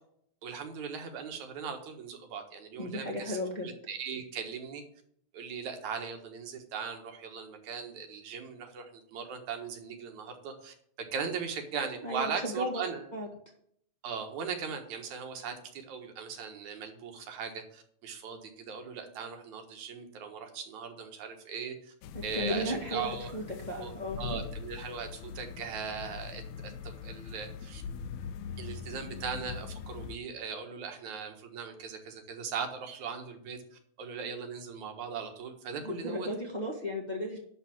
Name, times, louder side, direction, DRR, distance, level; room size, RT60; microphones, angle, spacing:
voice 1, 0.4-4.8 5.3-10.7 11.1-13.1 14.0-21.9 22.2-23.3 23.8-23.9 24.2-27.8 28.6-36.3, right 6 dB, 80° right, 5 dB, 2.9 m, -39 dB
voice 2, 2.8-3.7 12.0-13.3 22.3-24.4 35.8-37.4, left 1 dB, 20° left, -1 dB, 1.5 m, -35 dB
sound 1, 22.0-30.2, left 7 dB, 80° left, 1.8 m, -42 dB
11.5 x 4.0 x 7.2 m, 0.65 s
omnidirectional pair, 3.3 m